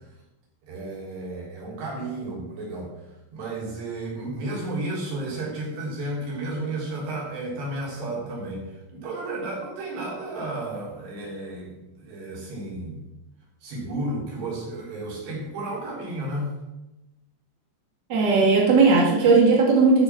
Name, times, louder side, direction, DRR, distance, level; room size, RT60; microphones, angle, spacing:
voice 1, 0.7-13.1 13.6-16.6, right 2 dB, 65° right, -4 dB, 5.9 m, -33 dB
voice 2, 18.1-20.0, right 4 dB, 40° right, -3 dB, 1.5 m, -17 dB
13.5 x 6.9 x 6.0 m, 0.98 s
omnidirectional pair, 5.2 m